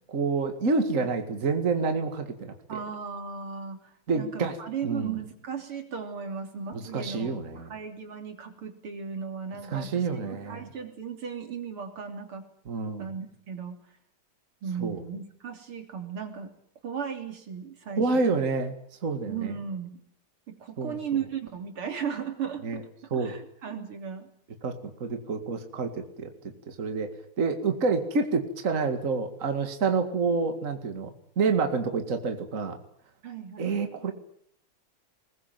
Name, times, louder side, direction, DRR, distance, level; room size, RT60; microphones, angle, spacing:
voice 1, 0.1-2.8 4.1-4.6 4.8-5.2 6.7-7.7 9.7-10.7 12.7-13.1 14.8-15.0 18.0-18.7 19.0-19.5 20.8-21.0 22.6-22.8 23.1-23.3 24.6-24.7 25.0-32.8 33.6-34.1, right 4 dB, 40° right, 6 dB, 2.4 m, -28 dB
voice 2, 2.7-12.4 13.0-13.8 14.6-16.5 16.8-18.4 19.3-20.0 20.5-22.8 23.1-24.3 33.2-33.7, right 7 dB, 80° right, 5 dB, 4.1 m, -36 dB
21.5 x 20.5 x 9.2 m, 0.67 s
omnidirectional pair, 2.4 m